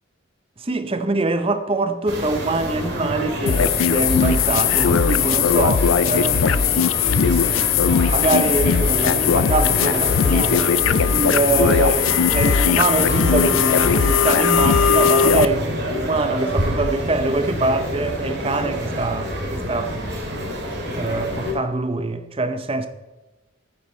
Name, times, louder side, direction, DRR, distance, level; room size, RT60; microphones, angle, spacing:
voice 1, 0.6-6.7 8.0-10.7 11.1-20.0 20.9-22.9, right 3 dB, 25° right, 0.7 m, -24 dB
sound 1, 2.1-21.5, equal, 55° right, 2.9 m, -28 dB
sound 2, 3.5-15.4, left 7 dB, 75° left, 0.4 m, -18 dB
sound 3, 4.9-15.3, right 3 dB, 70° right, 3.1 m, -36 dB
10.0 x 9.9 x 4.4 m
head